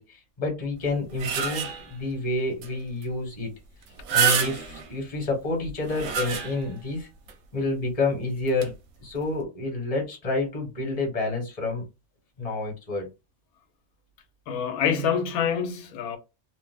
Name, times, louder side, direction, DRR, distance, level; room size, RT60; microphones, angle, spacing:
voice 1, 0.0-3.5 4.1-7.1 7.5-8.7 9.0-11.8 12.4-13.1, left 2 dB, 30° left, 1.0 m, -29 dB
sound 1, 0.8-2.0 2.6-2.7 3.0-3.1 3.9-4.9 5.6-6.8 7.3-7.4 8.5-8.7, right 8 dB, 85° right, 1.0 m, -27 dB
voice 2, 14.5-16.2, left 7 dB, 85° left, 1.1 m, -26 dB
2.7 x 2.0 x 3.3 m
omnidirectional pair, 1.5 m